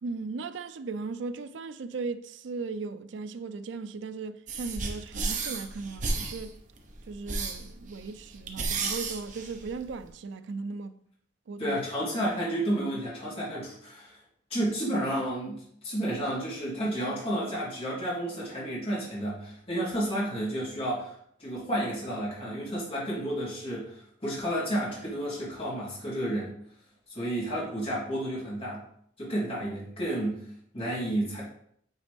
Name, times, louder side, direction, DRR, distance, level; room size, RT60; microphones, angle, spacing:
voice 1, 0.0-6.6 7.1-11.0 11.5-11.8, right 4 dB, 70° right, 0.4 m, -37 dB
sound 1, 4.5-10.1, right 3 dB, 40° right, 0.8 m, -33 dB
voice 2, 11.6-14.2 14.5-21.1 21.4-26.5 27.1-28.8 29.2-30.4 30.7-31.4, right 1 dB, 30° left, 2.6 m, -31 dB
8.2 x 4.0 x 3.4 m
head